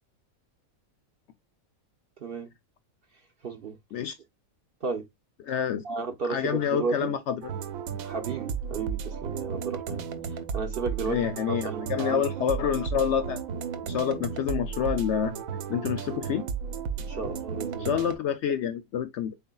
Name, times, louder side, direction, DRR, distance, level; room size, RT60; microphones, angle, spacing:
voice 1, 3.4-3.8 4.8-5.0 5.8-7.1 8.0-11.2 11.5-12.2 17.0-18.0, right 4 dB, 55° right, 0.7 m, -33 dB
voice 2, 5.5-5.8 6.3-7.3 11.1-13.4 13.8-15.3 15.7-16.4 17.8-19.3, left 8 dB, 65° left, 0.7 m, -27 dB
sound 1, 7.4-18.2, right 6 dB, 75° right, 1.1 m, -34 dB
4.2 x 3.6 x 2.2 m
omnidirectional pair, 1.5 m